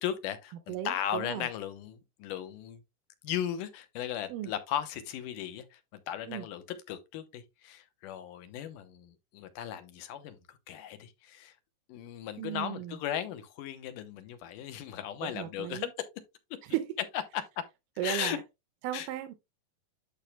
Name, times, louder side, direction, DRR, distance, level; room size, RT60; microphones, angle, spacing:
voice 1, 0.0-2.8 3.2-5.8 6.1-10.4 10.7-11.5 11.9-15.9 17.3-17.4 18.0-18.4 18.9-19.1, left 10 dB, 80° left, 2.5 m, -36 dB
voice 2, 0.7-1.5 4.3-4.5 6.3-6.5 12.4-13.0 15.2-15.9 16.6-17.0 18.0-18.4 18.8-19.3, right 12 dB, 90° right, 2.3 m, -35 dB
11.5 x 5.1 x 2.2 m
omnidirectional pair, 3.7 m